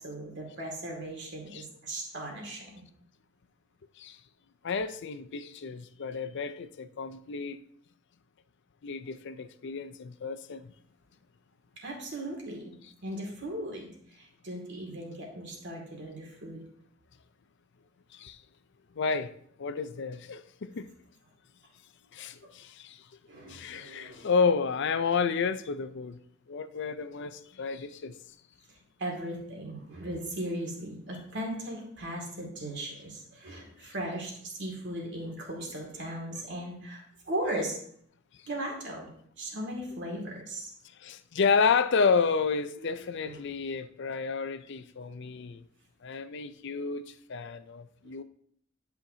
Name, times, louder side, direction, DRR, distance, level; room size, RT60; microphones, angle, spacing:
voice 1, 0.0-2.8 11.8-12.6 13.0-16.6 23.3-24.3 29.0-37.8 38.5-39.1 39.4-40.7 42.8-43.0 43.2-43.5 48.0-48.1, right 1 dB, 60° right, 2.3 m, -37 dB
voice 2, 4.6-7.6 8.8-10.7 18.1-18.4 19.0-19.3 19.6-20.9 22.1-23.0 23.5-26.2 26.5-28.1 41.0-45.6 46.0-47.0 47.3-48.2, left 5 dB, 60° left, 0.5 m, -30 dB
10.5 x 5.8 x 2.8 m
head